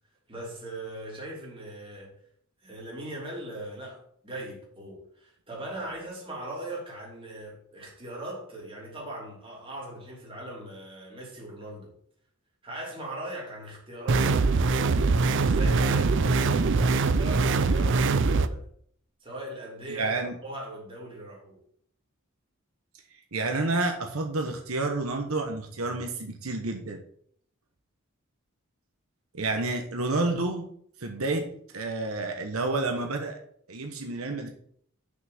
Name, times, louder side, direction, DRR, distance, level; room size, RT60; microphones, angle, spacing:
voice 1, 0.3-2.1 2.6-11.9 12.6-18.6 19.2-21.6, right 1 dB, 25° right, 3.2 m, -40 dB
sound 1, 14.1-18.5, right 3 dB, 60° right, 0.5 m, -23 dB
voice 2, 19.9-20.4 23.3-27.0 29.3-30.7 31.0-31.5 31.7-33.4 33.7-34.5, right 2 dB, 85° right, 1.2 m, -29 dB
6.3 x 6.0 x 5.9 m
head